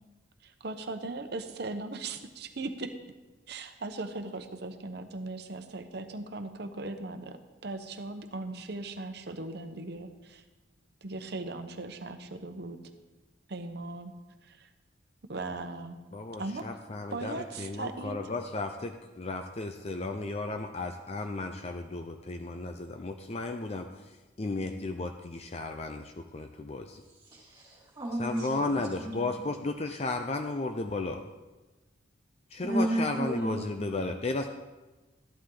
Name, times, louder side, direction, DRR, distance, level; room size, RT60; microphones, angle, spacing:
voice 1, 0.4-3.0 3.5-10.4 11.0-12.8 13.5-14.1 14.4-14.7 15.3-16.0 16.4-16.7 17.1-18.3, right 2 dB, 55° right, 8 dB, 0.9 m, -38 dB
voice 2, 16.1-23.9 24.4-26.0 26.3-26.8 28.2-31.2 32.5-34.5, left 2 dB, 35° left, 6 dB, 0.5 m, -34 dB
voice 3, 27.3-29.4 32.6-33.7, right 1 dB, 25° right, -6 dB, 2.8 m, -32 dB
13.5 x 11.5 x 3.8 m, 1.2 s
head